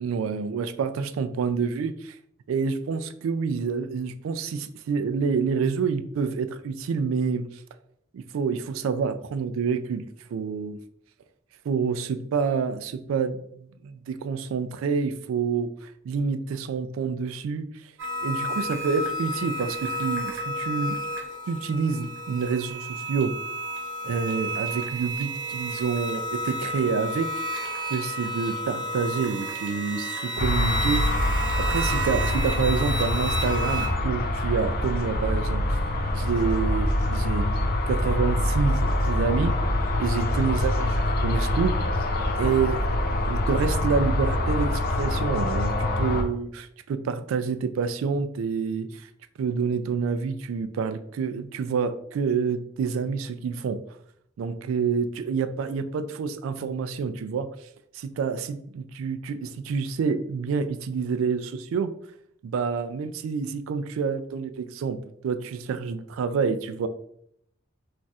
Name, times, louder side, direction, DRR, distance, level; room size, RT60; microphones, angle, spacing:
voice 1, 0.0-2.2 2.5-7.4 8.1-10.1 10.3-10.8 11.7-17.7 18.2-21.0 21.5-23.4 24.0-27.3 27.9-35.8 36.1-37.5 37.9-39.6 40.0-41.8 42.4-42.8 43.2-49.1 49.4-53.8 54.4-57.5 57.9-61.9 62.4-65.0 65.2-66.9, right 5 dB, 85° right, 11 dB, 0.3 m, -28 dB
sound 1, 18.0-33.9, right 1 dB, 65° right, 0.9 m, -32 dB
sound 2, 30.4-46.2, left 1 dB, 50° left, 0.4 m, -25 dB
2.4 x 2.3 x 4.0 m, 0.70 s
head